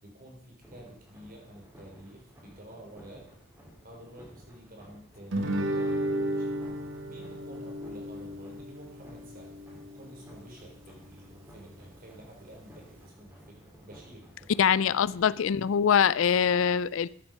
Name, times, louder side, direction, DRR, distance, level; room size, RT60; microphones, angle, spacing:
voice 1, 0.0-3.3 3.8-6.6 7.1-9.6 9.9-14.5, right 1 dB, 45° right, 4.1 m, -50 dB
sound 1, 0.6-15.2, equal, 15° right, 4.1 m, -54 dB
Guitar, 5.3-10.4, right 1 dB, 65° right, 1.5 m, -33 dB
voice 2, 14.6-17.1, left 7 dB, 70° left, 0.4 m, -23 dB
14.0 x 8.9 x 5.4 m
head